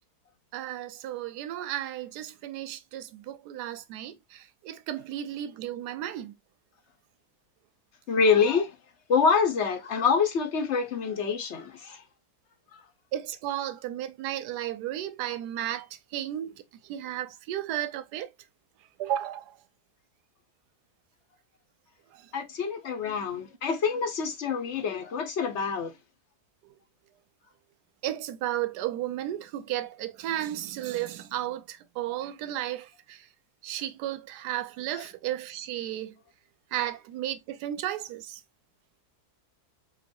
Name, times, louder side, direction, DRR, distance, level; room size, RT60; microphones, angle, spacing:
voice 1, 0.5-6.3 13.1-15.9 16.1-18.3 19.0-19.6 22.1-22.3 28.0-33.3 33.6-36.1 36.7-38.4, right 12 dB, 90° right, 1.2 m, -34 dB
voice 2, 8.1-8.7 9.1-12.0 12.7-12.8 22.3-25.9, left 5 dB, 50° left, 1.1 m, -26 dB
3.9 x 3.1 x 2.5 m
omnidirectional pair, 1.7 m